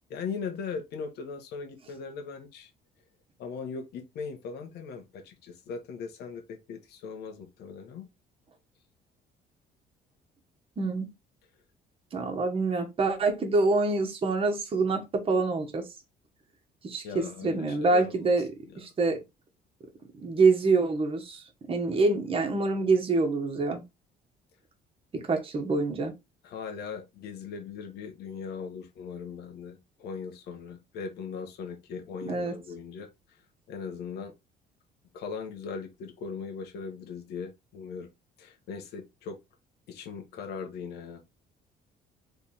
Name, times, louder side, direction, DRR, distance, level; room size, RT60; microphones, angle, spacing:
voice 1, 0.1-2.7 3.4-8.1 17.0-18.3 26.4-33.1 33.7-34.3 35.1-38.1 38.4-39.4 39.9-41.4, left 5 dB, 75° left, 1.2 m, -39 dB
voice 2, 10.8-11.1 12.1-15.8 16.8-18.5 18.7-19.2 20.2-23.8 25.2-26.1 32.2-32.5, right 3 dB, 35° right, 1.2 m, -26 dB
3.5 x 3.4 x 4.3 m
cardioid pair, 110°, 17 cm